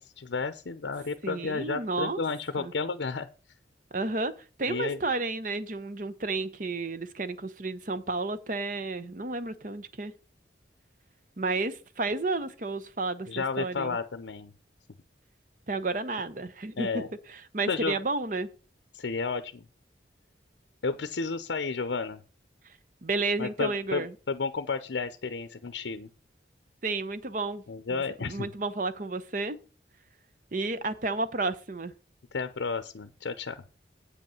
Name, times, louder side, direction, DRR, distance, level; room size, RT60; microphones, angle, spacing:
voice 1, 0.0-3.3 4.7-5.0 13.3-14.5 16.8-17.1 17.7-18.0 18.9-19.7 20.8-22.2 23.4-26.1 27.7-28.5 32.3-33.6, left 4 dB, 85° left, 0.6 m, -32 dB
voice 2, 1.2-2.2 2.6-2.7 3.9-4.3 4.6-10.1 11.4-14.0 15.7-17.0 17.3-18.5 23.0-24.1 26.8-27.6 27.9-29.6 30.5-31.9, right 3 dB, 45° right, 0.8 m, -31 dB
8.3 x 5.4 x 7.0 m
head